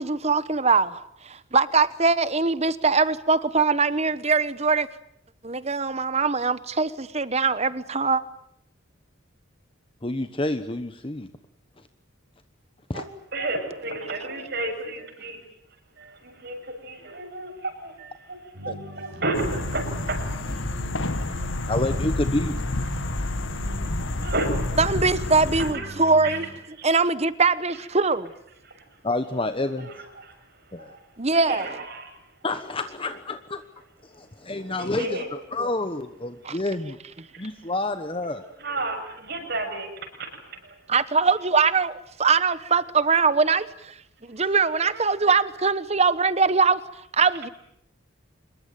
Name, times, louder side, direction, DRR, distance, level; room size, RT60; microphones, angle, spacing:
voice 1, 0.0-4.9 5.4-8.2 24.8-26.4 26.8-28.3 31.2-31.7 36.4-36.6 40.9-43.9 44.2-46.8 47.1-47.5, right 4 dB, 30° right, 1.1 m, -22 dB
voice 2, 10.0-11.3 12.9-13.0 18.7-18.8 21.7-22.6 29.0-29.9 30.7-31.0 32.4-33.6 34.0-37.0 37.4-38.4, left 2 dB, 25° left, 1.1 m, -29 dB
voice 3, 12.9-15.4 16.0-18.4 18.6-21.0 21.5-21.6 23.7-23.9 24.2-24.9 25.3-25.9 26.2-26.4 26.8-26.9 28.7-29.0 29.8-30.4 30.7-31.0 31.3-32.2 34.6-35.3 37.3-37.4 38.2-38.3 38.6-40.8 44.7-45.0, right 2 dB, 50° right, 7.1 m, -33 dB
sound 1, 18.5-26.5, right 1 dB, 75° right, 7.7 m, -41 dB
sound 2, 19.3-25.7, left 2 dB, 70° left, 1.7 m, -29 dB
26.0 x 22.0 x 9.2 m
head